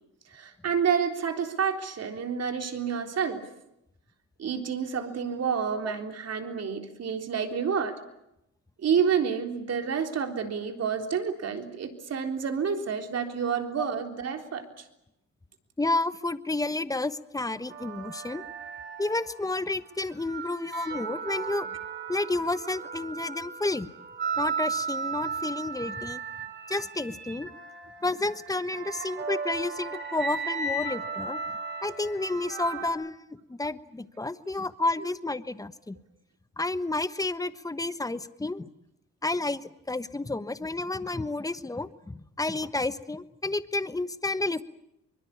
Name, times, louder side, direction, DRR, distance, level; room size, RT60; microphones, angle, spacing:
voice 1, 0.3-3.5 4.4-8.0 8.8-14.9, right 7 dB, 55° right, 5 dB, 3.7 m, -29 dB
voice 2, 15.8-18.4 19.0-21.7 22.1-23.9 24.4-26.2 26.7-27.5 28.0-31.4 31.8-36.0 36.6-38.7 39.2-44.6, left 2 dB, 10° left, 13 dB, 1.2 m, -31 dB
sound 1, 17.7-19.6 20.1-32.9, right 4 dB, 40° right, 4.3 m, -36 dB
23.5 x 22.5 x 8.6 m, 0.83 s
cardioid pair, 90°, 30 cm